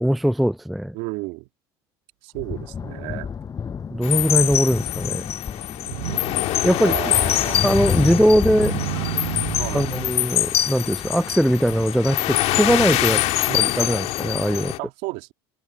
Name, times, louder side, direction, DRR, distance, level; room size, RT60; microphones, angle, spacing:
voice 1, 0.0-0.9 3.9-5.3 6.6-7.0 7.6-8.7 9.7-13.2 13.5-14.7, equal, ahead, 0.4 m, -20 dB
voice 2, 0.9-1.5 2.2-3.3 6.8-7.6 8.0-8.2 9.5-9.9 13.4-13.7 14.8-15.3, right 23 dB, 65° right, 2.4 m, -32 dB
sound 1, 2.3-14.6, left 6 dB, 25° left, 6.5 m, -33 dB
sound 2, 4.0-14.8, left 14 dB, 55° left, 1.6 m, -24 dB
Motor vehicle (road), 4.5-4.6 5.8-10.1, right 18 dB, 80° right, 6.4 m, -33 dB
supercardioid pair, 115°, 13 cm